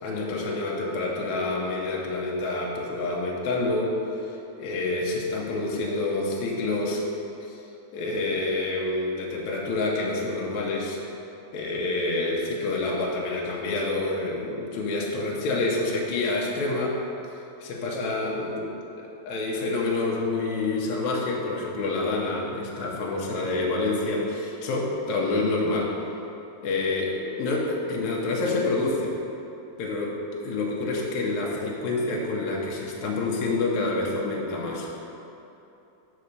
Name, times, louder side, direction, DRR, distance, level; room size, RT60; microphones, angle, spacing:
voice 1, 0.0-7.0 7.4-7.6 7.9-11.0 11.5-17.0 17.6-25.9 26.6-29.1 29.8-30.2 30.4-34.9, left 2 dB, 75° left, -3 dB, 1.8 m, -27 dB
6.7 x 4.3 x 6.5 m, 2.9 s
omnidirectional pair, 4.2 m